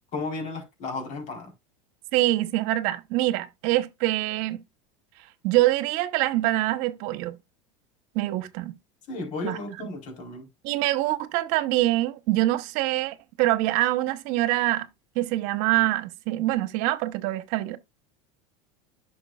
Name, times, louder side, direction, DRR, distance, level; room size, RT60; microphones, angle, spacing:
voice 1, 0.1-1.5 9.1-10.5, left 3 dB, 50° left, 4.2 m, -34 dB
voice 2, 2.1-4.6 5.4-7.4 8.1-8.7 9.4-9.6 10.6-14.9 15.1-17.8, right 16 dB, 60° right, 1.1 m, -25 dB
11.0 x 6.2 x 2.5 m
supercardioid pair, 105°, 16 cm